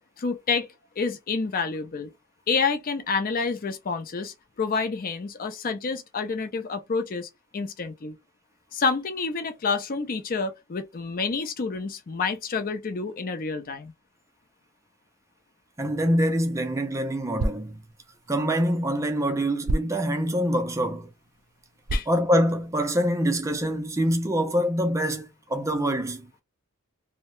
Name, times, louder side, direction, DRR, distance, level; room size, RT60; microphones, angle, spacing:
voice 1, 0.2-0.7 1.0-2.1 2.5-8.2 8.7-13.9 21.9-22.1, left 4 dB, 40° left, 0.5 m, -28 dB
voice 2, 15.8-17.8 18.3-21.1 22.1-26.3, equal, 15° right, 0.4 m, -25 dB
sound 1, 16.1-23.0, right 1 dB, 85° right, 0.5 m, -35 dB
2.7 x 2.1 x 3.1 m
head